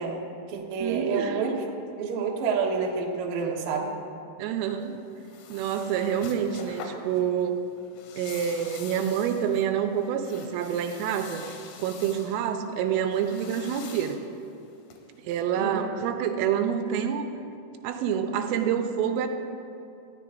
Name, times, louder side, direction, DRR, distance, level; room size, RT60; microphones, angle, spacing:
voice 1, 0.0-1.7 2.0-3.9 15.6-15.9, right 5 dB, 75° right, 0 dB, 2.1 m, -29 dB
voice 2, 0.8-1.5 4.4-5.0 5.5-7.6 8.2-11.5 11.8-14.2 15.2-17.3 17.8-19.3, right 8 dB, 90° right, 6 dB, 3.4 m, -27 dB
sound 1, 4.6-15.4, left 5 dB, 90° left, 3.7 m, -46 dB
19.0 x 14.0 x 2.6 m, 2.5 s
omnidirectional pair, 5.8 m